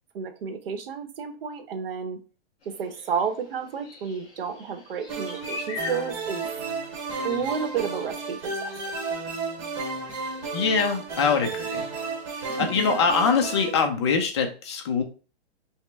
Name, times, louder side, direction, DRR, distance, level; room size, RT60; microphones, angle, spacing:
voice 1, 0.1-2.2 2.7-6.5 7.2-8.7 12.5-13.0, right 6 dB, 60° right, 8 dB, 0.9 m, -31 dB
sound 1, 2.6-12.6, left 4 dB, 55° left, 2.2 m, -44 dB
sound 2, 5.1-13.8, right 3 dB, 30° right, 0.9 m, -33 dB
voice 2, 10.5-11.8 12.6-15.0, left 5 dB, 25° left, 4 dB, 0.5 m, -23 dB
5.4 x 2.1 x 3.3 m, 0.36 s
hypercardioid pair, 170°, 33 cm